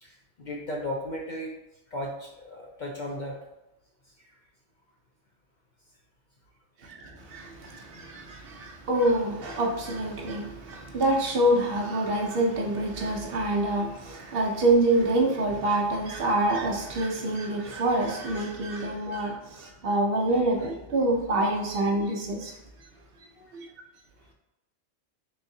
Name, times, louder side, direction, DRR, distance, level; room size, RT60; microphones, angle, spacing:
voice 1, 0.0-1.5 1.9-3.4 4.3-4.4 23.4-23.5, left 1 dB, 55° left, 0.5 m, -35 dB
voice 2, 6.8-22.5 23.5-23.7, right 1 dB, 60° right, 0.8 m, -26 dB
3.9 x 3.5 x 2.6 m
omnidirectional pair, 1.2 m